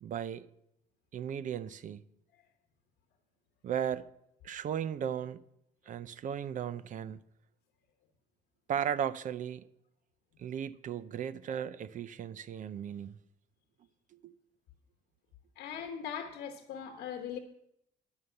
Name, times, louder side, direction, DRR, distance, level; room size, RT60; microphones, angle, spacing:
voice 1, 0.0-0.5 1.1-2.0 3.6-4.1 4.4-5.4 5.9-7.2 8.7-9.7 10.4-13.2 14.2-14.3, right 9 dB, 50° right, 0.6 m, -36 dB
voice 2, 15.6-17.4, left 8 dB, 80° left, 1.1 m, -40 dB
11.5 x 5.6 x 7.8 m
cardioid pair, 110°, 17 cm